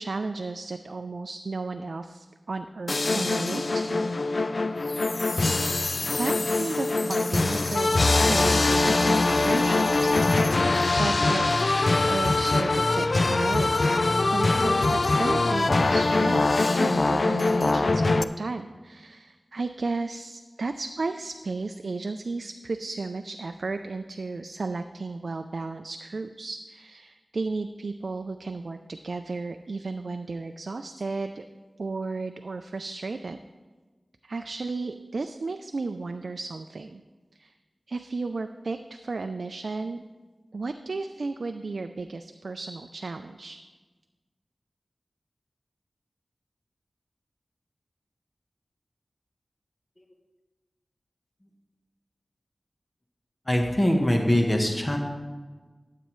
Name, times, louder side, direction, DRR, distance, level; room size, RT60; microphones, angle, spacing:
voice 1, 0.0-4.1 6.1-11.7 12.1-13.7 14.2-31.5 31.8-33.4 34.2-37.0 37.3-37.5 37.9-40.0 40.5-43.6, right 3 dB, 75° right, 7 dB, 0.3 m, -34 dB
sound 1, 2.9-18.2, left 3 dB, 60° left, 0.3 m, -23 dB
voice 2, 53.5-55.0, left 1 dB, 25° left, 2 dB, 1.1 m, -23 dB
12.0 x 7.6 x 3.1 m, 1.3 s
wide cardioid pair, 50°, 0 cm